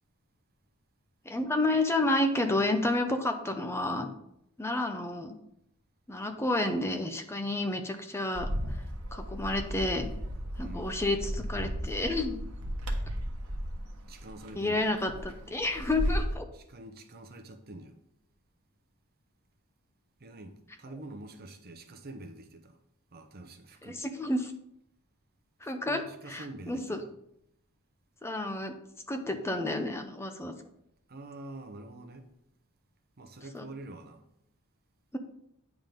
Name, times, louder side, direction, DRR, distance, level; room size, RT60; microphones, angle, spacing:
voice 1, 1.3-4.1 4.6-5.4 6.1-8.5 9.1-10.1 10.6-12.4 14.6-16.4 23.8-24.5 25.6-26.0 26.3-27.0 28.2-28.7 29.1-30.5 33.5-33.6, left 2 dB, 10° left, 0.6 m, -30 dB
Bird, 8.3-16.3, equal, 70° right, 1.2 m, -35 dB
voice 2, 10.6-10.9 14.1-14.9 16.5-17.9 20.2-22.8 23.1-24.0 25.6-27.1 31.1-32.3 33.2-34.2, right 2 dB, 45° right, 0.8 m, -46 dB
9.0 x 3.7 x 5.2 m
head